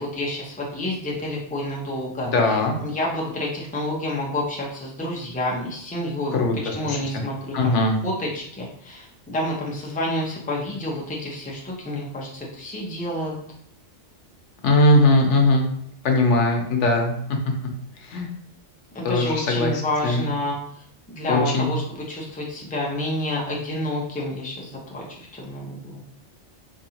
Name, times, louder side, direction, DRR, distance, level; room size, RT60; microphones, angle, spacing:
voice 1, 0.0-13.3 18.9-25.0 25.3-26.0, left 1 dB, 10° left, -3 dB, 0.6 m, -29 dB
voice 2, 2.3-2.8 6.3-7.2 7.5-8.0 14.6-15.7 16.0-17.4 18.0-18.3 19.0-19.7 20.0-20.2 21.3-21.7, left 2 dB, 80° left, 2 dB, 1.0 m, -20 dB
3.8 x 2.8 x 2.8 m, 0.66 s
omnidirectional pair, 1.2 m